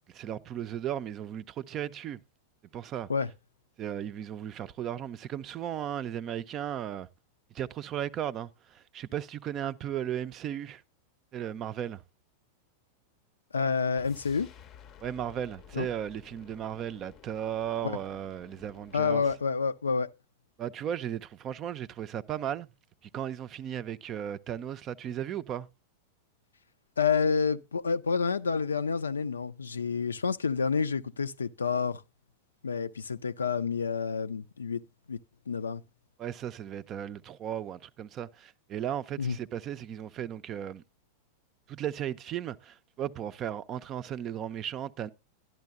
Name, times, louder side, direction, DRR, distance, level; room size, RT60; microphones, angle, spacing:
voice 1, 0.1-2.2 2.7-3.1 3.8-7.1 7.5-10.8 11.3-12.0 15.0-19.2 20.6-22.7 23.1-25.7 36.2-40.8 41.7-45.1, right 10 dB, 30° right, 0.5 m, -35 dB
voice 2, 13.5-14.5 15.7-15.9 17.8-18.0 18.9-20.1 27.0-32.0 32.6-34.8 35.1-35.2 35.5-35.8 39.2-39.4, left 5 dB, 75° left, 0.4 m, -29 dB
sound 1, 13.9-19.5, left 9 dB, 35° left, 0.6 m, -54 dB
12.0 x 11.0 x 2.3 m
figure-of-eight pair, 90°, 0 cm